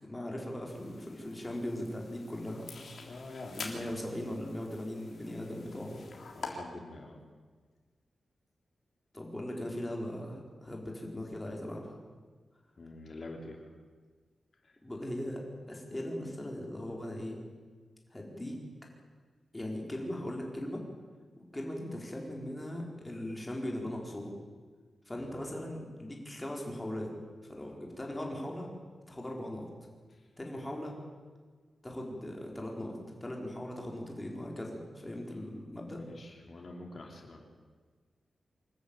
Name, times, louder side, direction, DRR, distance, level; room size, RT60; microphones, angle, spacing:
voice 1, 0.0-2.7 3.5-6.0 9.1-11.9 14.8-17.4 18.1-18.6 19.5-20.8 21.4-24.3 25.1-27.1 27.4-28.7 29.1-29.7 30.4-30.9 31.8-36.0, left 1 dB, 15° left, 0 dB, 4.4 m, -39 dB
sound 1, 0.7-6.5, left 4 dB, 70° left, 3.6 m, -47 dB
voice 2, 3.0-4.1 6.3-7.2 12.8-13.7 14.6-14.8 25.1-25.6 30.1-30.3 35.9-37.5, left 2 dB, 45° left, 2 dB, 3.2 m, -47 dB
25.5 x 13.5 x 9.0 m, 1.5 s
wide cardioid pair, 135°, 0 cm